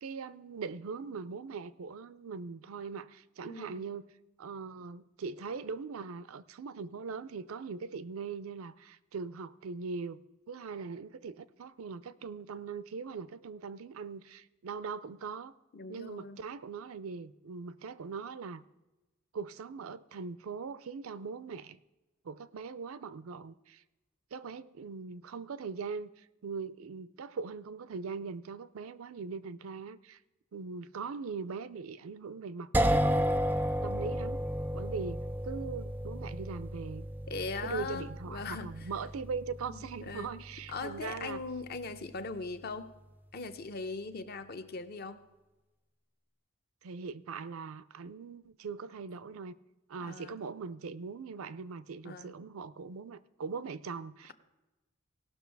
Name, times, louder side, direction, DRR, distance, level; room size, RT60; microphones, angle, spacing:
voice 1, 0.0-4.1 4.4-15.5 15.9-18.6 19.3-21.8 22.2-23.8 24.3-30.2 30.5-32.7 33.8-37.0 37.6-41.4 46.8-49.5 49.9-54.3, right 5 dB, 85° right, 0.5 m, -41 dB
voice 2, 3.5-3.9 15.7-16.4 37.3-38.9 39.7-40.4 40.7-42.9 43.3-45.2 50.0-50.4 52.0-52.4, left 4 dB, 45° left, 0.7 m, -40 dB
sound 1, 32.7-42.5, equal, 10° right, 0.3 m, -34 dB
17.5 x 6.2 x 4.6 m
head